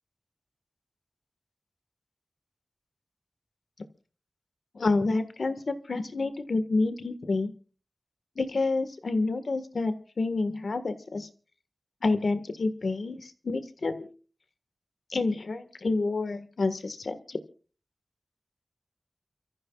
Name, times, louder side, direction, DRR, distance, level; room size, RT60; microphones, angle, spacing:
voice 1, 4.7-7.5 8.4-11.3 12.0-14.1 15.1-17.4, left 3 dB, 80° left, 10 dB, 1.6 m, -28 dB
30.0 x 14.0 x 2.4 m, 0.37 s
wide cardioid pair, 55°, 0 cm